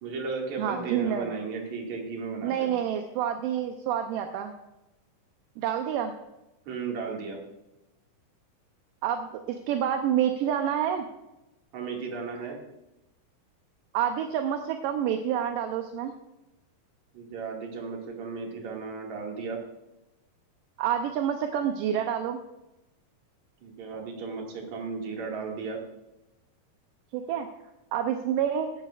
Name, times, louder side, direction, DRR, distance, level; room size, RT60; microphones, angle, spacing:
voice 1, 0.0-2.7 6.7-7.4 11.7-12.6 17.1-19.6 23.6-25.8, right 4 dB, 60° right, -1 dB, 3.3 m, -35 dB
voice 2, 0.6-1.3 2.4-4.5 5.6-6.1 9.0-11.1 13.9-16.1 20.8-22.4 27.1-27.5 27.9-28.7, right 9 dB, 80° right, 5 dB, 2.4 m, -28 dB
16.5 x 11.5 x 2.5 m, 0.95 s
omnidirectional pair, 3.9 m